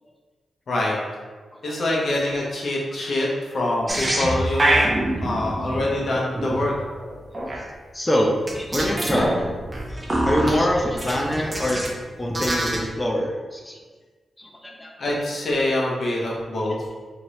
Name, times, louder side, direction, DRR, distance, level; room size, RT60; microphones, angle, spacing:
voice 1, 1.6-4.8 5.2-6.7 15.0-16.8, left 1 dB, 55° left, -3 dB, 0.9 m, -24 dB
sound 1, 3.9-7.6 8.5-12.0 12.2-12.9, right 1 dB, 25° right, 0.7 m, -25 dB
voice 2, 7.9-9.6 9.9-11.9 12.2-13.8 14.4-14.9, equal, 15° left, -1 dB, 0.5 m, -25 dB
3.6 x 2.9 x 3.1 m, 1.4 s
wide cardioid pair, 120°, 0 cm